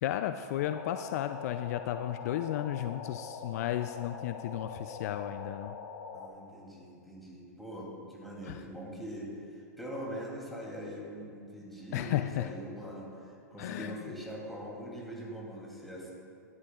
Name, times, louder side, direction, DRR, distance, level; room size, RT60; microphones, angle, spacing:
voice 1, 0.0-5.7 8.4-8.6 11.9-12.5 13.6-14.0, left 12 dB, 60° left, 9 dB, 0.4 m, -34 dB
sound 1, 0.6-6.3, left 5 dB, 75° left, 1.3 m, -43 dB
voice 2, 6.1-16.1, equal, ahead, -5 dB, 2.8 m, -42 dB
15.0 x 11.5 x 2.4 m, 2.3 s
hypercardioid pair, 130°, 10 cm